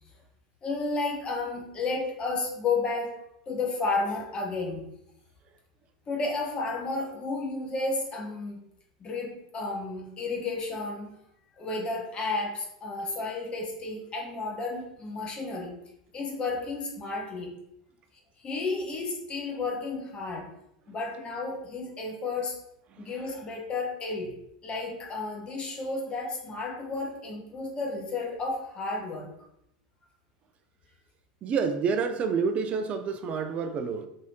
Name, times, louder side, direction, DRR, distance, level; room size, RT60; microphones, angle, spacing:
voice 1, 0.6-3.2 3.5-4.9 6.1-8.6 9.0-11.2 11.6-15.8 16.1-17.5 18.4-20.5 20.9-22.6 23.0-24.3 24.6-29.3, left 3 dB, 30° left, 1.1 m, -32 dB
voice 2, 31.4-34.1, right 5 dB, 35° right, 0.6 m, -28 dB
3.6 x 3.0 x 4.3 m
hypercardioid pair, 105°, 3 cm